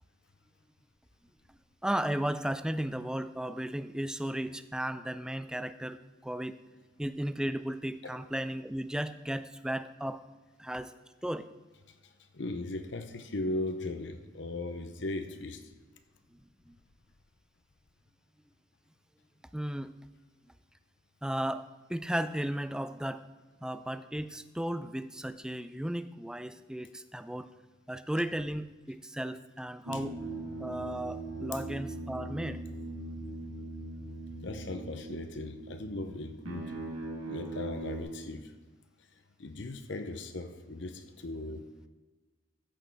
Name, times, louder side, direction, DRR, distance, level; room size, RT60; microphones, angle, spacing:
voice 1, 1.8-6.6 7.0-10.2 10.6-10.9 11.2-11.5 16.3-16.4 16.7-16.8 19.5-19.9 21.2-23.2 23.6-27.5 27.9-30.2 30.6-32.6, right 1 dB, 5° right, 12 dB, 0.3 m, -35 dB
voice 2, 12.3-15.6 34.4-36.6 37.3-38.5 39.4-41.6, left 2 dB, 60° left, 8 dB, 0.7 m, -37 dB
sound 1, 29.9-38.0, right 2 dB, 85° right, 2.3 m, -40 dB
14.5 x 6.4 x 4.6 m, 1.3 s
head